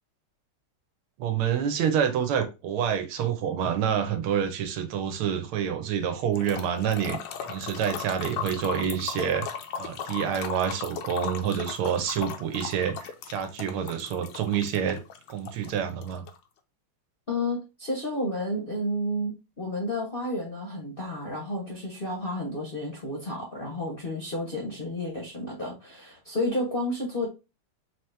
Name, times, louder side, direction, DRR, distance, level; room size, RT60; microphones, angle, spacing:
voice 1, 1.2-7.2 7.5-9.5 9.8-15.0 15.3-16.2, right 8 dB, 90° right, 1.6 m, -27 dB
sound 1, 6.4-16.4, left 7 dB, 75° left, 1.3 m, -37 dB
voice 2, 17.3-27.3, left 1 dB, 40° left, 0.8 m, -31 dB
4.1 x 2.9 x 3.1 m
omnidirectional pair, 2.3 m